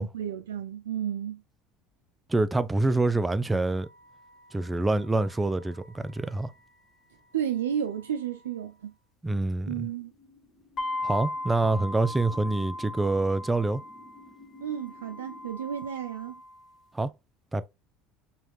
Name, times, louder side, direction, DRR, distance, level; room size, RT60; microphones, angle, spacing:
voice 1, 0.0-1.4 7.3-8.9 9.7-10.1 14.6-16.4, right 9 dB, 90° right, 0.3 m, -32 dB
voice 2, 2.3-3.9 4.5-6.5 9.2-9.9 11.0-13.8 16.9-17.1 17.5-17.7, right 2 dB, 15° right, 0.5 m, -26 dB
sound 1, 3.4-8.9 10.8-16.8, left 2 dB, 45° left, 1.6 m, -40 dB
sound 2, 9.5-15.5, left 3 dB, 20° left, 1.2 m, -53 dB
5.6 x 3.1 x 2.3 m
hypercardioid pair, 75°, 0 cm